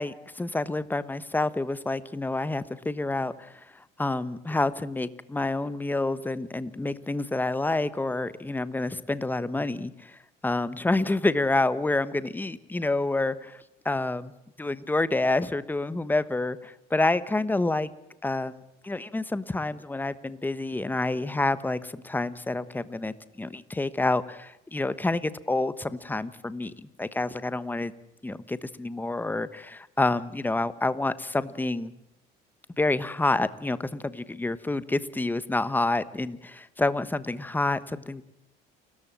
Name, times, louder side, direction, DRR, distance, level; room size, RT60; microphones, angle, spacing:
voice 1, 0.0-14.3 14.6-17.9 18.2-27.9 28.2-31.9 32.8-38.2, left 2 dB, 10° left, 15 dB, 1.2 m, -28 dB
29.5 x 14.0 x 7.5 m, 0.84 s
cardioid pair, 110°, 19 cm